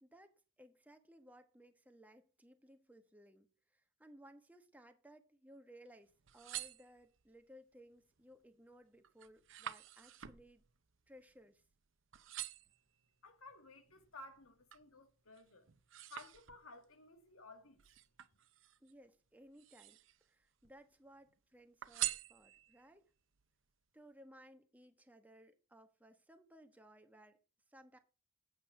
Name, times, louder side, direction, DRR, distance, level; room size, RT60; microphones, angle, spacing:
voice 1, 0.0-10.6 11.1-11.6 18.8-20.0 20.2-23.1 23.9-27.4 27.7-28.0, equal, 10° right, 1.1 m, -61 dB
sound 1, 6.1-7.4 8.0-8.4 8.7-11.8 12.1-12.8 13.4-14.9 15.3-16.9 17.8-18.9 19.5-20.3 20.6-21.3 21.8-22.9 23.4-23.5, right 14 dB, 65° right, 0.7 m, -46 dB
voice 2, 13.2-15.7 16.1-17.8, left 3 dB, 85° left, 1.9 m, -56 dB
8.7 x 8.2 x 4.8 m
head